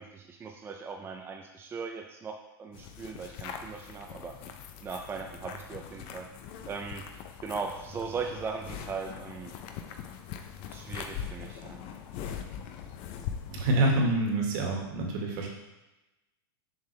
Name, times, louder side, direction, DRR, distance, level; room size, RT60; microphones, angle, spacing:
voice 1, 0.0-4.3 4.8-6.3 6.7-7.0 7.4-9.5 10.7-11.8, right 5 dB, 15° right, 2 dB, 0.5 m, -38 dB
sound 1, 2.7-13.9, left 8 dB, 45° left, 0.7 m, -42 dB
voice 2, 13.5-15.5, right 2 dB, 55° right, 0 dB, 1.9 m, -26 dB
7.1 x 5.5 x 3.4 m, 1.0 s
hypercardioid pair, 120°, 13 cm